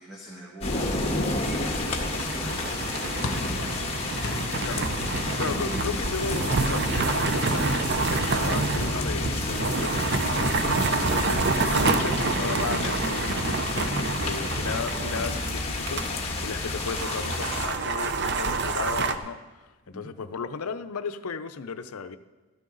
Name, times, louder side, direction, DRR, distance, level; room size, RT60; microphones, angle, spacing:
voice 1, 0.0-3.8 19.9-20.1, equal, 5° right, -6 dB, 1.7 m, -45 dB
sound 1, 0.6-17.7, left 2 dB, 25° left, 1.3 m, -30 dB
sound 2, 0.9-16.1 16.4-16.5 16.8-19.2, right 3 dB, 50° right, 0.6 m, -28 dB
sound 3, 3.2-7.7, left 2 dB, 55° left, 1.4 m, -38 dB
voice 2, 4.6-22.2, left 5 dB, 75° left, 10 dB, 0.6 m, -35 dB
13.5 x 13.0 x 3.9 m, 1.2 s
head